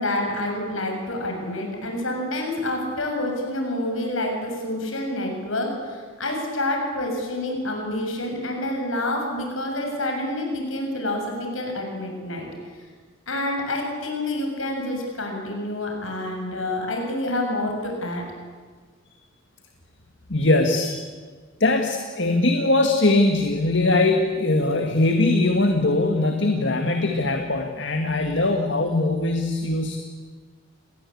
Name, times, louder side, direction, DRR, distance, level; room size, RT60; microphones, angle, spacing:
voice 1, 0.0-12.5 13.3-18.2, left 1 dB, 80° left, 2 dB, 7.1 m, -28 dB
voice 2, 20.3-21.0 21.6-30.0, left 2 dB, 60° left, 4 dB, 2.0 m, -21 dB
29.0 x 21.0 x 8.6 m, 1.5 s
head